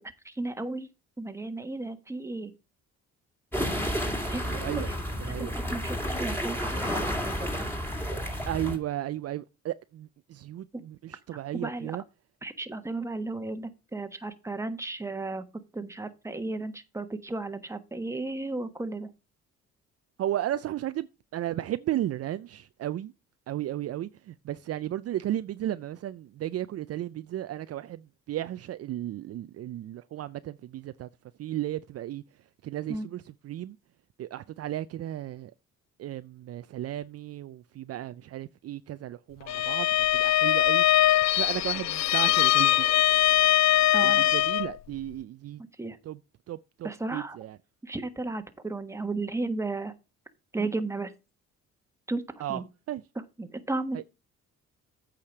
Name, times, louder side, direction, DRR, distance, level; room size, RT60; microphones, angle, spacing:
voice 1, 0.2-0.9 1.2-2.5 4.3-4.5 4.7-4.9 5.4-7.7 10.7-10.8 11.5-12.0 12.4-15.4 15.7-19.1 32.9-33.1 43.9-44.2 45.6-46.0 46.8-47.4 47.8-49.9 50.5-51.1 52.1-52.2 52.5-52.6 53.4-54.0, right 2 dB, 10° right, 1.2 m, -34 dB
sound 1, 3.5-8.8, equal, 5° left, 2.5 m, -31 dB
voice 2, 4.1-4.9 5.2-5.5 8.5-12.0 20.2-23.1 23.5-31.1 31.4-32.2 32.6-33.8 34.2-35.5 36.0-40.8 41.3-42.8 43.4-43.5 44.0-45.6 46.0-46.2 46.5-47.6 52.4-52.6 52.9-53.0 53.9-54.0, right 13 dB, 55° right, 0.5 m, -34 dB
Bowed string instrument, 39.5-44.7, left 14 dB, 65° left, 0.5 m, -22 dB
8.6 x 5.0 x 5.9 m
cardioid pair, 90°, 30 cm